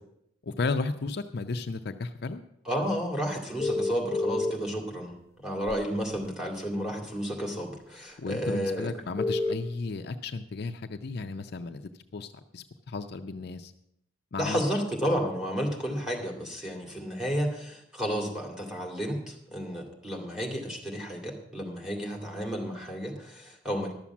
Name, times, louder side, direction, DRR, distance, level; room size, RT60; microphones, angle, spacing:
voice 1, 0.4-2.4 8.2-13.7 14.3-14.6, left 3 dB, 55° left, 7 dB, 0.5 m, -34 dB
voice 2, 2.7-8.9 14.4-23.9, equal, 5° right, 0 dB, 2.3 m, -32 dB
sound 1, 3.6-4.5 5.7-5.8 9.2-9.5, left 3 dB, 15° left, 0.9 m, -27 dB
12.0 x 7.2 x 7.1 m, 0.77 s
head